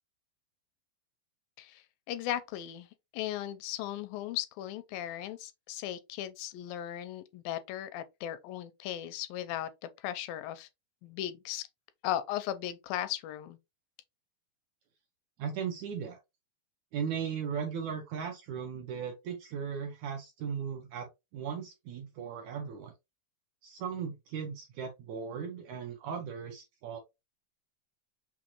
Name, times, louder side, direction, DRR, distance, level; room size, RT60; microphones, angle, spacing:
voice 1, 1.6-2.9 3.1-10.7 11.0-11.7 12.0-13.6, left 12 dB, 85° left, 2.3 m, -37 dB
voice 2, 15.4-16.2 16.9-22.9 23.6-27.0, right 7 dB, 75° right, 1.7 m, -37 dB
6.1 x 2.5 x 2.9 m
omnidirectional pair, 4.0 m